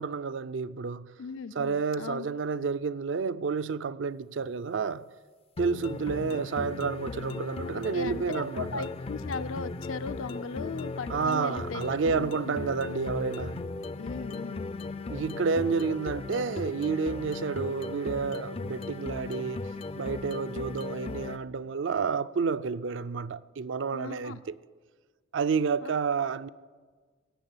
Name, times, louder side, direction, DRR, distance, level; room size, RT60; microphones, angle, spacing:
voice 1, 0.0-1.1 1.5-5.1 5.6-8.9 11.1-13.6 15.1-24.6 25.3-26.5, right 5 dB, 65° right, 0.4 m, -30 dB
voice 2, 1.2-2.3 7.6-11.8 12.1-12.5 14.0-14.7 23.9-24.4 25.8-25.9, left 5 dB, 80° left, 0.6 m, -38 dB
sound 1, 5.6-21.4, left 3 dB, 30° left, 0.4 m, -37 dB
17.0 x 6.8 x 8.9 m
head